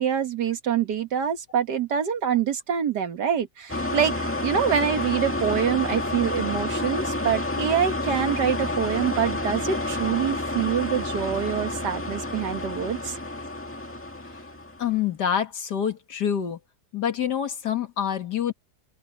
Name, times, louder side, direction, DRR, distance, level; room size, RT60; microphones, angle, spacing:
voice 1, 0.0-4.1 4.4-13.2, right 8 dB, 85° right, 2.1 m, -25 dB
sound 1, 3.7-14.9, left 2 dB, 10° left, 1.7 m, -29 dB
voice 2, 14.8-16.6 16.9-18.5, left 9 dB, 85° left, 2.3 m, -26 dB
omnidirectional pair, 1.7 m